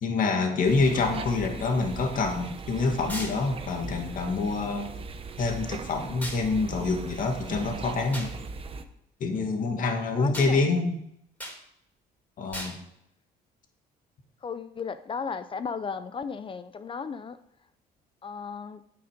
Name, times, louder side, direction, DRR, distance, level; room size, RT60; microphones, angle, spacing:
voice 1, 0.0-4.9 5.4-8.3 9.2-11.0 12.4-12.8, left 3 dB, 55° left, 2.0 m, -26 dB
sound 1, 0.6-8.8, right 4 dB, 35° right, 0.9 m, -39 dB
sound 2, 3.1-3.4 6.2-6.4 8.1-8.3 10.3-10.5 11.4-11.6 12.5-12.8, equal, 10° left, 3.3 m, -36 dB
voice 2, 10.2-10.7 14.4-17.4 18.2-18.8, left 5 dB, 30° left, 0.5 m, -35 dB
8.8 x 8.8 x 5.1 m
cardioid pair, 110°, 17 cm